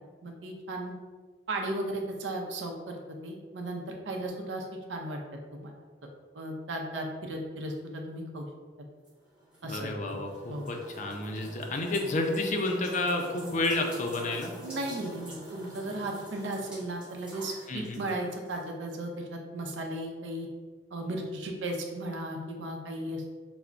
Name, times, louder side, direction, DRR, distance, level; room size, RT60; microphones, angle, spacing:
voice 1, 0.2-0.9 1.5-5.2 5.5-5.7 6.3-8.5 9.6-10.2 10.5-10.7 14.6-20.5 20.9-23.3, right 1 dB, 75° right, 1 dB, 0.6 m, -36 dB
sound 1, 9.0-18.7, right 1 dB, 5° right, 0.8 m, -46 dB
voice 2, 9.7-14.5 17.7-18.0, left 2 dB, 40° left, 3 dB, 0.4 m, -30 dB
5.6 x 2.0 x 2.5 m, 1.4 s
head